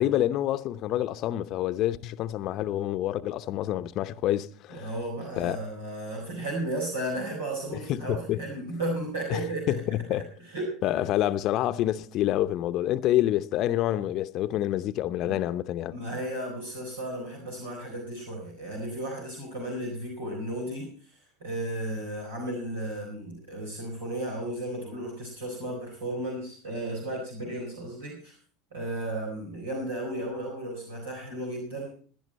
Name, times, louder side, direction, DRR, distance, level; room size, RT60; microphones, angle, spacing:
voice 1, 0.0-4.9 5.4-5.6 7.7-8.4 9.3-10.3 10.8-15.9, left 13 dB, 50° left, 0.8 m, -27 dB
voice 2, 4.7-9.8 10.5-10.8 15.2-15.4 15.9-21.1 21.4-28.4 28.7-31.9, right 1 dB, 85° right, 4.2 m, -34 dB
17.0 x 10.5 x 4.2 m
hypercardioid pair, 80°, 0 cm